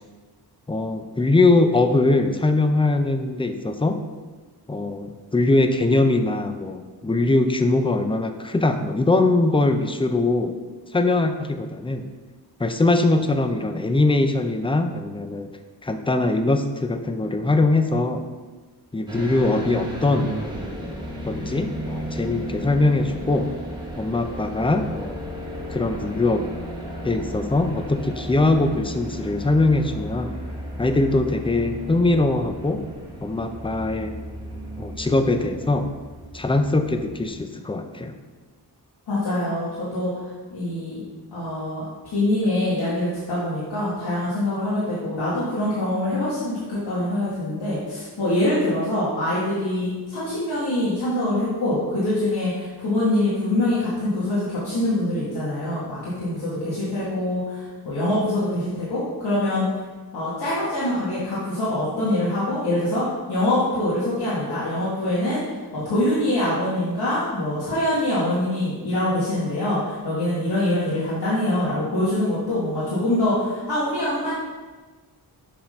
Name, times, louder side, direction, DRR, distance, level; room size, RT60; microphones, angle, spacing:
voice 1, 0.7-4.0 4.7-10.6 10.9-12.1 12.6-15.5 15.8-18.2 18.9-20.3 21.3-23.5 24.0-25.2 25.7-26.5 27.0-30.3 30.8-32.9 33.2-34.1 34.8-35.9 36.3-38.1, left 2 dB, 15° left, 7 dB, 0.5 m, -21 dB
sound 1, 19.1-37.4, equal, 10° right, 1.3 m, -34 dB
voice 2, 39.1-41.0 41.3-59.6 60.1-65.4 65.7-74.3, left 1 dB, 75° left, -9 dB, 1.8 m, -24 dB
7.1 x 3.7 x 5.2 m, 1.3 s
wide cardioid pair, 105°, 40 cm